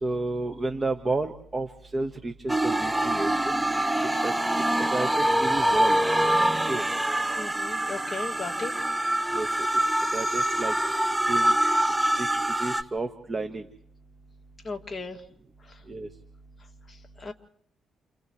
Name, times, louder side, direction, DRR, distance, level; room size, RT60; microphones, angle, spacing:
voice 1, 0.0-3.6 4.2-4.3 4.9-6.0 6.6-6.8 9.3-9.7 10.1-11.0 11.2-11.6 12.0-13.6 15.9-16.1, right 2 dB, 30° right, 6 dB, 1.4 m, -31 dB
sound 1, 2.5-12.8, right 1 dB, 10° right, 0.8 m, -25 dB
voice 2, 7.3-8.7 14.6-15.2 15.6-15.8 16.9-17.3, left 4 dB, 25° left, 2 dB, 2.4 m, -36 dB
29.5 x 28.5 x 3.2 m, 0.66 s
cardioid pair, 90°, 0 cm